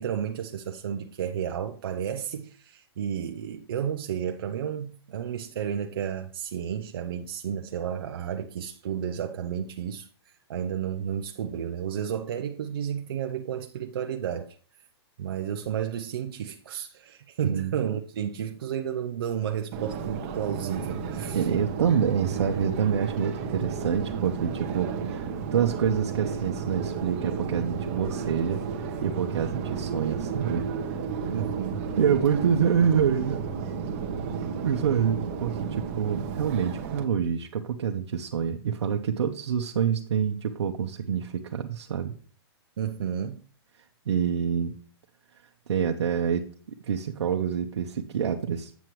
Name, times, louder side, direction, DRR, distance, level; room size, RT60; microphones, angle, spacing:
voice 1, 0.0-14.6 15.2-21.5 31.3-31.9 42.8-43.4, right 9 dB, 55° right, 0.6 m, -32 dB
voice 2, 17.4-17.7 21.3-31.0 32.0-33.4 34.6-42.1 44.1-44.7 45.7-48.7, right 7 dB, 85° right, 0.9 m, -27 dB
Subway metro underground, 19.7-37.0, right 6 dB, 30° right, 0.9 m, -33 dB
8.2 x 7.5 x 3.2 m
hypercardioid pair, 170°, 14 cm